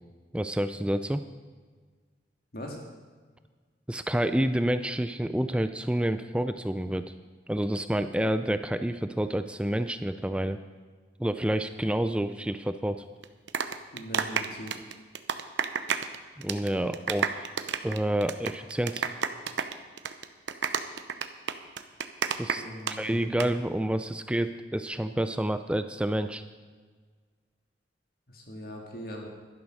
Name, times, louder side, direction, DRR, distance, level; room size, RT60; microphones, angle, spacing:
voice 1, 0.3-1.2 3.9-7.1 7.5-10.6 11.2-13.0 16.4-17.5 17.8-19.1 22.4-22.6 22.9-26.4, right 1 dB, 5° right, 10 dB, 0.4 m, -28 dB
sound 1, 13.2-16.2 16.4-16.7 16.9-22.9 23.2-23.5, right 6 dB, 85° right, 0.8 m, -30 dB
voice 2, 13.9-14.8 22.5-23.5 28.3-29.3, equal, 55° left, 1 dB, 1.9 m, -41 dB
12.0 x 10.5 x 6.3 m, 1.5 s
head